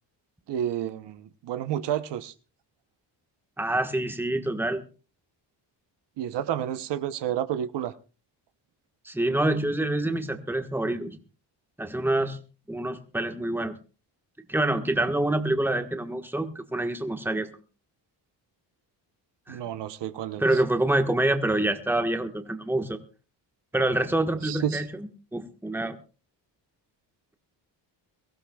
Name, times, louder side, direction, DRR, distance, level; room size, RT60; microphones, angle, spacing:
voice 1, 0.5-2.3 6.2-7.9 19.5-20.4 24.4-24.8, right 10 dB, 75° right, 0.9 m, -30 dB
voice 2, 3.6-4.8 9.0-11.2 11.8-12.4 12.7-13.8 14.5-17.5 19.5-19.6 20.4-23.0 23.7-26.0, right 1 dB, 5° right, 1.3 m, -26 dB
23.5 x 15.0 x 2.3 m
cardioid pair, 125°, 42 cm